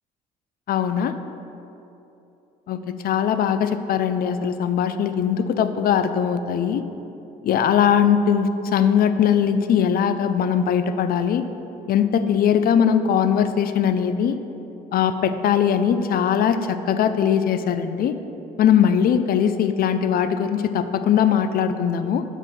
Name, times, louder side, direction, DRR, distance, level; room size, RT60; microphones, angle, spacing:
voice 1, 0.7-1.1 2.7-6.8 7.4-11.4 11.9-14.4 14.9-18.1 18.6-22.2, left 8 dB, 55° left, 10 dB, 0.4 m, -20 dB
5.9 x 5.0 x 4.4 m, 3.0 s
supercardioid pair, 65°, 18 cm